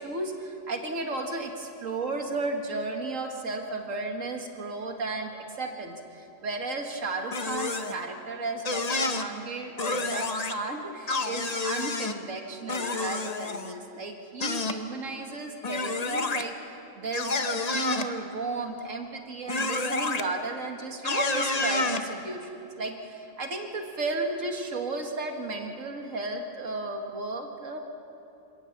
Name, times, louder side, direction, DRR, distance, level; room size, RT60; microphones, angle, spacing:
voice 1, 0.0-5.3 5.6-16.5 16.9-27.8, right 3 dB, 85° right, 4 dB, 2.1 m, -34 dB
sound 1, 7.3-8.0 8.6-9.2 9.8-10.5 11.1-12.1 12.7-13.7 14.4-14.8 15.6-16.4 17.1-18.1 19.5-20.2 21.0-22.0, left 3 dB, 35° left, 1.0 m, -29 dB
27.5 x 18.0 x 7.2 m, 2.8 s
omnidirectional pair, 1.3 m